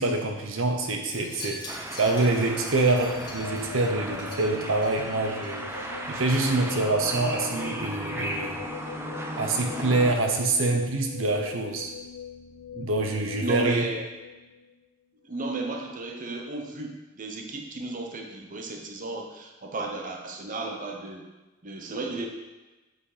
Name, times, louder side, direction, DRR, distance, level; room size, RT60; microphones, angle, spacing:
voice 1, 0.0-1.6 1.9-8.6 9.4-11.9 12.7-13.9, right 2 dB, 65° right, 3 dB, 0.8 m, -26 dB
Wind chime, 1.0-5.5 5.8-6.1 6.4-6.5, left 1 dB, 20° left, 1.8 m, -44 dB
sound 1, 1.7-10.2, right 1 dB, 10° right, 0.6 m, -36 dB
sound 2, 2.8-14.9, left 6 dB, 80° left, 0.5 m, -42 dB
voice 2, 13.4-14.0 15.2-21.3 21.6-22.3, right 2 dB, 40° right, 2 dB, 0.9 m, -34 dB
7.8 x 5.1 x 4.9 m, 1.1 s
head